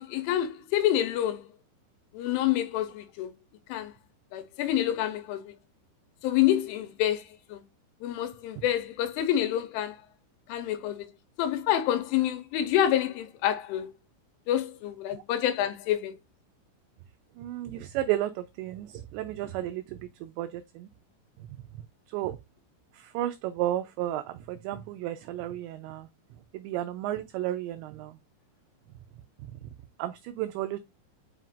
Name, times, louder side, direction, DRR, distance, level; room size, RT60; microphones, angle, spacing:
voice 1, 0.0-1.4 2.1-3.3 3.7-3.9 4.3-5.5 6.2-7.2 7.5-7.6 8.0-10.0 10.5-11.1 11.4-13.9 14.5-16.2, left 11 dB, 85° left, 3.1 m, -27 dB
voice 2, 17.4-20.9 22.1-22.4 22.9-26.1 26.5-28.2 30.0-30.8, right 13 dB, 85° right, 2.5 m, -33 dB
9.2 x 4.9 x 2.4 m
omnidirectional pair, 5.6 m